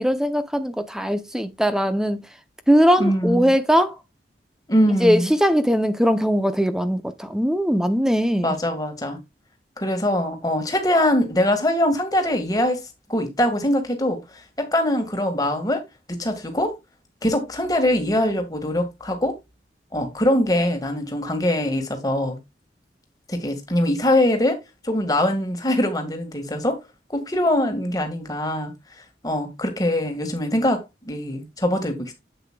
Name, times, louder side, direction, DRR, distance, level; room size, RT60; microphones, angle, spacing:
voice 1, 0.0-2.2 2.7-3.9 5.0-8.5, equal, 5° right, 0.6 m, -20 dB
voice 2, 3.0-3.6 4.7-5.3 8.4-9.2 9.8-12.8 13.1-14.2 14.6-15.8 16.2-16.7 17.2-19.4 19.9-22.4 23.3-24.6 24.8-26.8 27.1-28.7 29.2-32.1, left 1 dB, 20° left, 1.7 m, -22 dB
7.9 x 7.9 x 2.2 m
head